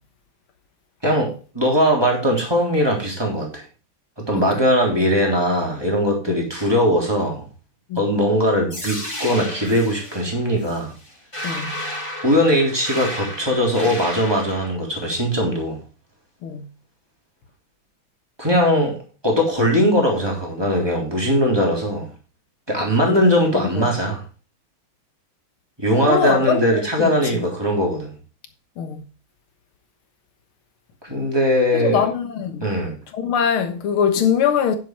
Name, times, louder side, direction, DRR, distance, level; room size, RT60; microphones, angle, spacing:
voice 1, 1.0-3.6 4.2-7.4 8.0-10.9 12.2-15.8 18.4-22.1 22.7-24.2 25.8-28.1 31.0-32.0 32.6-32.9, equal, 10° right, 3.5 m, -20 dB
sound 1, 8.7-14.7, left 1 dB, 15° left, 3.3 m, -32 dB
voice 2, 11.4-11.7 16.4-16.7 23.0-23.9 26.0-27.4 28.8-29.0 31.7-32.7 33.1-34.8, left 7 dB, 90° left, 2.2 m, -23 dB
9.7 x 7.5 x 4.6 m
omnidirectional pair, 2.3 m